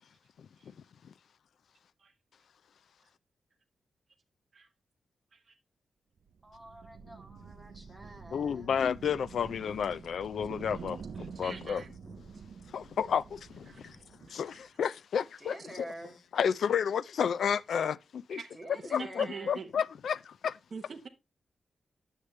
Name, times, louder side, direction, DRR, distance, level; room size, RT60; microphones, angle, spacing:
sound 1, 6.2-14.7, right 6 dB, 60° right, 0.4 m, -48 dB
voice 1, 6.4-8.8 15.4-16.2 18.5-19.6, right 1 dB, 5° right, 1.8 m, -47 dB
voice 2, 8.3-11.8 12.7-14.0 14.3-15.9 16.3-18.4 18.9-20.5, left 7 dB, 75° left, 0.4 m, -31 dB
voice 3, 11.2-11.9 13.7-13.9 14.3-14.6 18.3-18.5 18.7-19.7 20.7-21.1, right 5 dB, 40° right, 0.9 m, -45 dB
10.0 x 6.5 x 3.2 m
wide cardioid pair, 175°, 0 cm